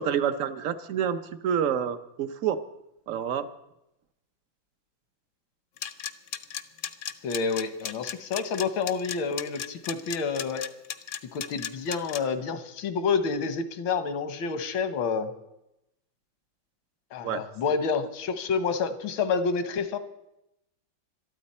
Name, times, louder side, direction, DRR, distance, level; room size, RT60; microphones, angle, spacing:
voice 1, 0.0-2.6 3.1-3.5 17.2-17.4, right 8 dB, 60° right, 11 dB, 0.9 m, -28 dB
sound 1, 5.8-12.2, left 9 dB, 60° left, 0.8 m, -35 dB
voice 2, 7.2-10.7 11.3-15.3 17.1-20.0, left 5 dB, 85° left, 10 dB, 1.9 m, -28 dB
22.5 x 13.0 x 4.3 m, 0.88 s
omnidirectional pair, 2.1 m